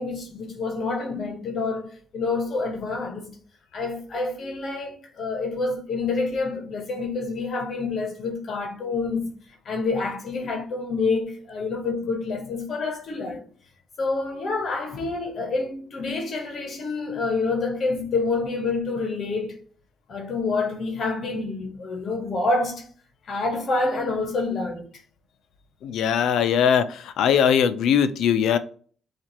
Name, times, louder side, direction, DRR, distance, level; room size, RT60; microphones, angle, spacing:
voice 1, 0.0-3.3 3.7-9.3 9.6-13.4 14.0-19.6 20.1-22.9 23.3-24.9, left 3 dB, 55° left, 1.0 m, -27 dB
voice 2, 25.8-28.6, left 8 dB, 75° left, 0.5 m, -20 dB
7.3 x 2.5 x 3.0 m
cardioid pair, 90°, 0 cm